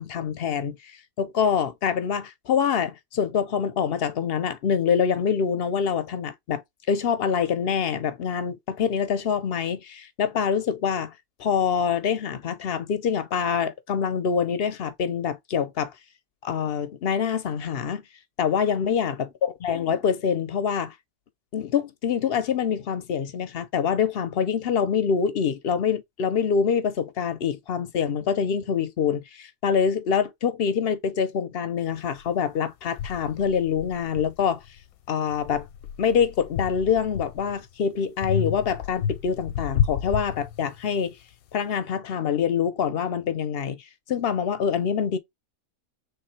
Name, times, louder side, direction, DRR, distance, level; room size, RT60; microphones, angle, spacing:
voice 1, 0.0-6.6 6.9-11.1 11.4-15.9 16.4-18.0 18.4-20.9 21.5-34.6 35.1-35.7 36.0-41.2 41.5-43.8 44.1-45.2, left 7 dB, 60° left, 0.7 m, -25 dB
sound 1, 32.2-32.3 33.0-34.8 35.3-37.6 38.2-41.0, left 8 dB, 90° left, 1.1 m, -31 dB
3.4 x 3.2 x 4.2 m
omnidirectional pair, 1.5 m